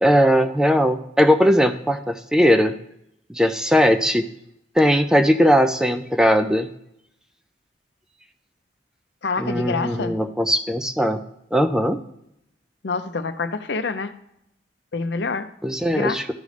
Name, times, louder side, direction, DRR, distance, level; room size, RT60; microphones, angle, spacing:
voice 1, 0.0-2.7 3.3-4.3 4.8-6.7 9.4-11.2 11.5-12.0 15.6-16.3, equal, 5° right, 7 dB, 0.4 m, -19 dB
voice 2, 9.2-10.1 12.8-14.1 14.9-15.5 15.9-16.2, left 4 dB, 70° left, 10 dB, 0.6 m, -26 dB
13.0 x 5.2 x 3.3 m, 0.79 s
head